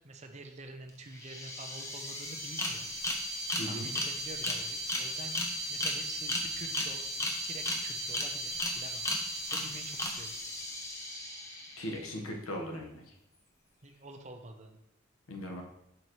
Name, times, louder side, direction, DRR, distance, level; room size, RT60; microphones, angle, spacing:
voice 1, 0.0-2.9 3.6-5.4 5.7-10.3 13.8-14.8, right 3 dB, 35° right, 5 dB, 0.7 m, -47 dB
sound 1, 0.9-1.0 1.2-12.0, left 1 dB, 15° left, 0.9 m, -35 dB
voice 2, 11.8-13.0 15.3-15.6, equal, 85° left, 2 dB, 1.3 m, -38 dB
7.6 x 5.7 x 3.1 m, 0.78 s
head